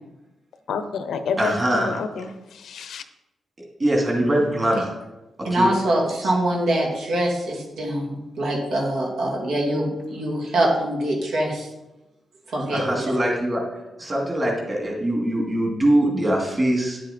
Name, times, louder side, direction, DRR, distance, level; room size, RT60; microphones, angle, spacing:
voice 1, 0.7-3.0 4.3-4.6, left 5 dB, 75° left, 10 dB, 0.8 m, -29 dB
voice 2, 1.4-2.0 3.8-4.9 5.5-5.7 6.2-6.3 12.7-13.6 14.0-17.0, right 1 dB, 25° right, -1 dB, 2.5 m, -22 dB
voice 3, 5.4-11.7 12.5-13.2, right 1 dB, 75° right, -3 dB, 2.6 m, -24 dB
10.5 x 7.7 x 4.3 m, 1.0 s
wide cardioid pair, 160°, 0 cm